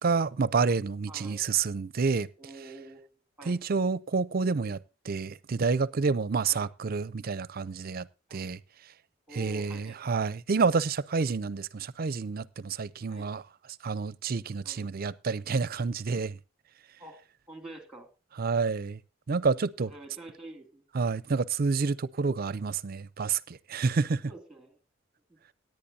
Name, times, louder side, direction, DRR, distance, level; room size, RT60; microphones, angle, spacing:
voice 1, 0.0-2.3 3.5-4.8 5.0-8.6 9.3-13.4 13.8-16.4 18.4-19.0 19.3-19.9 20.9-24.2, right 4 dB, 50° right, 0.5 m, -29 dB
voice 2, 1.1-1.4 2.4-3.0 3.4-3.6 6.5-6.7 8.3-8.5 9.3-10.1 13.1-13.3 14.6-14.9 17.0-17.2 17.5-18.1 19.9-20.8 24.3-24.8 25.3-25.4, right 2 dB, 5° right, 2.6 m, -47 dB
17.5 x 10.5 x 2.8 m
head